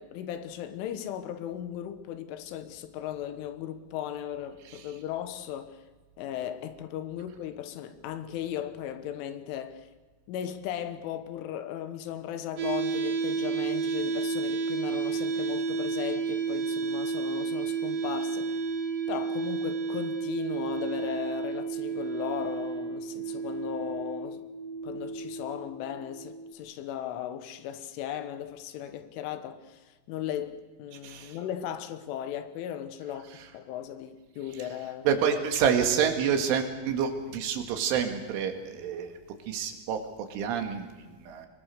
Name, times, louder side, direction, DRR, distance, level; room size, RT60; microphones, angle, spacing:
voice 1, 0.0-5.8 6.2-9.9 10.3-18.6 19.1-24.5 24.8-35.1, left 10 dB, 85° left, 3.7 m, -37 dB
sound 1, 12.6-26.5, right 5 dB, 50° right, 3.6 m, -31 dB
voice 2, 31.0-31.4 35.1-39.2 39.5-40.0 40.3-41.5, right 7 dB, 80° right, 4.5 m, -28 dB
24.5 x 21.5 x 6.7 m
omnidirectional pair, 5.5 m